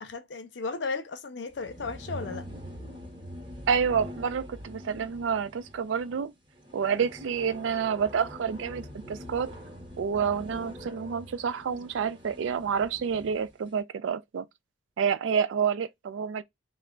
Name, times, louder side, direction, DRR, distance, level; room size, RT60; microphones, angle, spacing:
voice 1, 0.0-2.5, left 4 dB, 65° left, 0.6 m, -35 dB
sound 1, 1.5-13.5, equal, 25° right, 0.8 m, -44 dB
voice 2, 3.7-6.3 6.7-9.5 10.0-14.5 15.0-16.4, right 6 dB, 80° right, 0.4 m, -28 dB
3.3 x 2.1 x 3.6 m
head